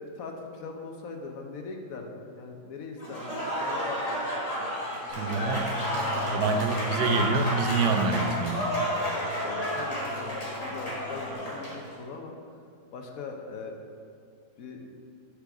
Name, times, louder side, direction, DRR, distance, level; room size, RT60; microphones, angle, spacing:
voice 1, 0.0-5.5 6.1-7.1 9.4-12.4 12.9-13.8 14.6-14.8, left 4 dB, 65° left, 3 dB, 1.1 m, -41 dB
Applause / Crowd, 3.0-11.8, equal, 25° left, 1.4 m, -31 dB
Bass guitar, 5.1-11.3, left 12 dB, 35° right, 2.0 m, -43 dB
voice 2, 5.1-5.7 6.2-8.6, right 4 dB, 90° right, 6 dB, 1.3 m, -27 dB
6.7 x 4.8 x 6.0 m, 2.3 s
omnidirectional pair, 1.8 m